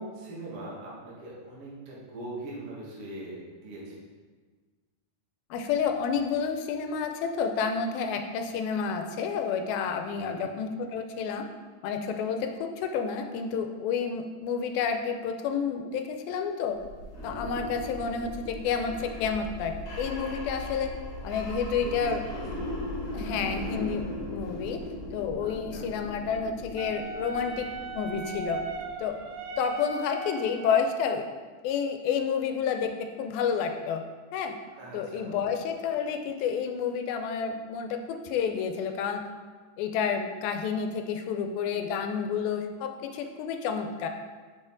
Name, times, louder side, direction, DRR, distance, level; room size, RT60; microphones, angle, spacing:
voice 1, 0.0-4.0 10.1-10.4 21.8-22.7 25.4-25.9 34.8-35.4, right 2 dB, 50° right, -5 dB, 2.1 m, -41 dB
voice 2, 5.5-11.5 11.8-16.8 17.2-20.9 21.2-22.2 23.1-24.1 24.3-24.8 25.1-27.7 27.9-28.6 29.0-29.2 29.6-31.3 31.6-34.0 34.3-34.6 34.9-39.3 39.8-44.1, left 6 dB, 85° left, 6 dB, 2.4 m, -30 dB
sound 1, 16.7-29.5, left 1 dB, 45° left, 1.2 m, -38 dB
Wind instrument woodwind instrument, 26.8-30.9, right 4 dB, 85° right, 2.4 m, -38 dB
6.4 x 6.4 x 3.8 m, 1.4 s
omnidirectional pair, 4.2 m